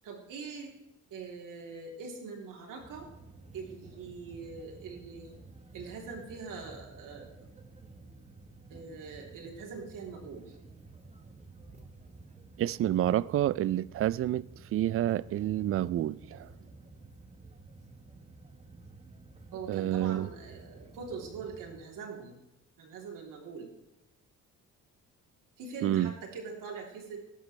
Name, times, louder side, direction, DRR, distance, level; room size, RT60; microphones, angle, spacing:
voice 1, 0.0-0.7 1.1-3.1 3.5-5.4 5.7-7.3 8.7-10.6 16.2-16.7 19.5-22.4 22.8-23.7 25.6-27.2, right 4 dB, 85° right, 3.3 m, -43 dB
sound 1, 2.8-21.8, right 3 dB, 20° right, 1.3 m, -52 dB
voice 2, 12.6-14.4 14.7-16.5 19.7-20.3 25.8-26.1, right 12 dB, 45° right, 0.4 m, -28 dB
15.5 x 12.0 x 3.3 m
cardioid pair, 140°, 32 cm